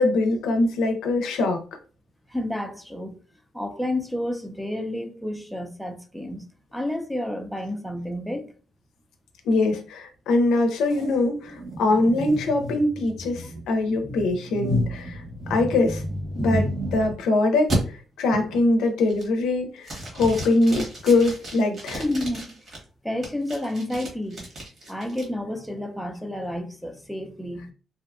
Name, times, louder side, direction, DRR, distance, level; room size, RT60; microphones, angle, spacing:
voice 1, 0.0-1.6 9.5-15.2 15.5-16.0 16.3-22.0, left 2 dB, 85° left, 0.4 m, -23 dB
voice 2, 2.3-3.2 3.5-6.5 6.7-8.5 22.0-22.6 23.0-24.5 24.9-27.7, left 1 dB, ahead, 0.4 m, -30 dB
sound 1, 10.9-17.2 17.7-17.8 18.3-18.7 19.1-19.5 19.8-22.8 23.2-25.2, equal, 45° right, 1.2 m, -31 dB
2.6 x 2.1 x 2.4 m
cardioid pair, 90°, 0 cm